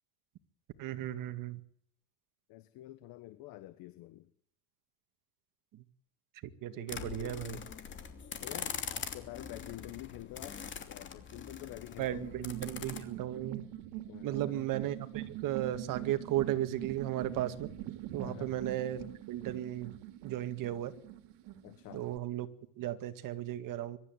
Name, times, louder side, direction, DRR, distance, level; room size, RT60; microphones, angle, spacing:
voice 1, 0.8-1.6 5.7-5.8 6.6-7.6 12.0-13.6 14.2-17.7 18.1-19.9 20.2-20.9 21.9-22.5 22.8-24.0, right 13 dB, 50° right, 10 dB, 2.1 m, -35 dB
voice 2, 2.5-4.3 6.7-7.7 8.4-10.6 10.9-12.3 14.1-14.6 18.2-18.5 21.6-22.2, left 16 dB, 60° left, 12 dB, 1.4 m, -48 dB
sound 1, 6.9-13.0, left 6 dB, 30° left, 2.8 m, -43 dB
sound 2, 12.2-22.2, right 13 dB, 80° right, 2.6 m, -44 dB
23.5 x 12.5 x 9.5 m, 0.70 s
cardioid pair, 150°, 40 cm